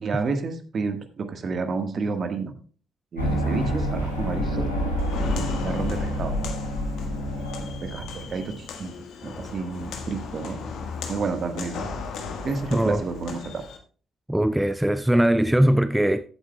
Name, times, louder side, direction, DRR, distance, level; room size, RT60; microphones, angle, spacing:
voice 1, 0.0-2.5 3.1-4.7 5.3-6.5 7.6-8.9 9.2-10.6 11.1-11.9 12.4-13.6, right 4 dB, 45° right, 1.5 m, -30 dB
sound 1, 3.2-8.6, equal, 85° left, 1.9 m, -28 dB
Walk footsteps, 5.0-13.8, left 4 dB, 60° left, 1.4 m, -37 dB
voice 2, 12.7-13.0 14.3-16.2, right 1 dB, 5° right, 0.4 m, -20 dB
15.0 x 8.7 x 2.3 m
figure-of-eight pair, 45°, 0 cm